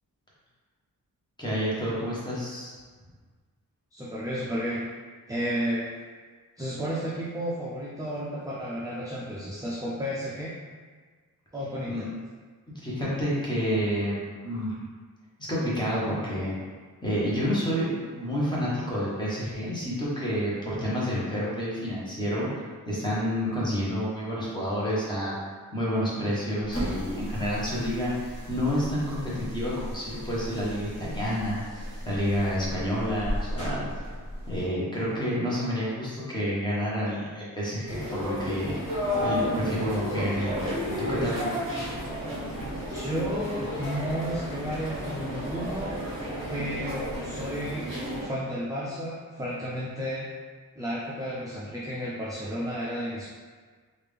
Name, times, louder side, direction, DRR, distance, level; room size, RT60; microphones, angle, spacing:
voice 1, 1.4-2.7 11.9-12.0 12.8-14.8 15.5-16.5 17.0-25.4 25.7-33.8 34.5-38.7 39.2-41.4, equal, 15° left, -8 dB, 0.9 m, -29 dB
voice 2, 3.9-4.9 5.3-5.9 6.6-10.7 11.5-12.1 42.9-46.0 46.5-47.9 48.2-50.3 50.8-53.3, equal, 10° right, -7 dB, 0.3 m, -32 dB
sound 1, 26.6-34.7, equal, 40° left, 1.1 m, -36 dB
sound 2, 37.9-48.2, equal, 35° right, 1.4 m, -32 dB
3.5 x 2.4 x 3.3 m, 1.5 s
wide cardioid pair, 180°, 35 cm